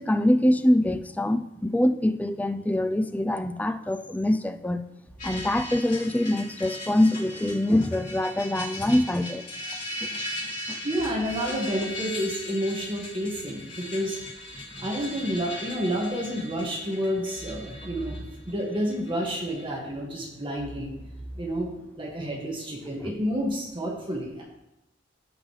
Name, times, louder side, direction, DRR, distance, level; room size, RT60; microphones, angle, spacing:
voice 1, 0.0-4.8 5.2-9.5 10.0-10.2 10.7-10.8 14.7-14.9 23.0-23.1, left 1 dB, 10° left, 9 dB, 0.3 m, -24 dB
sound 1, 5.2-19.6, left 1 dB, 45° left, 3.0 m, -38 dB
voice 2, 10.8-14.2 14.8-18.2 18.5-20.9 21.4-21.7 22.0-24.4, equal, 30° right, -3 dB, 1.9 m, -29 dB
15.0 x 5.2 x 3.2 m, 0.91 s
head